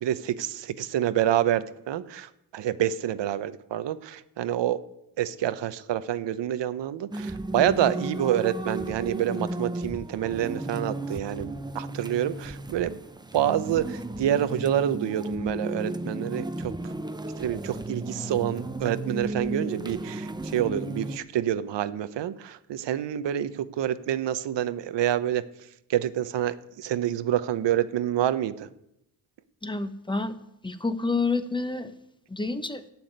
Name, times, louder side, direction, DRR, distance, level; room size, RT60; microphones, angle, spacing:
voice 1, 0.0-4.8 5.2-13.0 13.3-16.9 17.4-25.4 25.9-28.7, right 11 dB, 75° right, 13 dB, 0.9 m, -27 dB
sound 1, 7.1-21.2, right 2 dB, 10° right, 0.7 m, -34 dB
voice 2, 29.6-30.3 30.6-31.9 32.3-32.8, left 3 dB, 10° left, 10 dB, 1.1 m, -28 dB
12.0 x 7.1 x 9.3 m, 0.82 s
cardioid pair, 75°, 43 cm